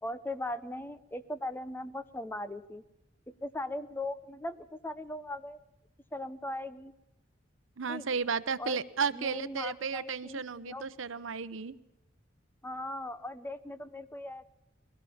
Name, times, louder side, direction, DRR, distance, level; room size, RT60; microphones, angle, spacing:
voice 1, 0.0-2.8 3.3-5.6 6.1-6.9 7.9-8.1 8.6-8.8 9.1-10.9 12.6-14.4, left 1 dB, 10° left, 12 dB, 0.8 m, -39 dB
voice 2, 7.8-11.8, right 5 dB, 80° right, 15 dB, 0.8 m, -33 dB
21.0 x 17.0 x 7.3 m, 0.87 s
head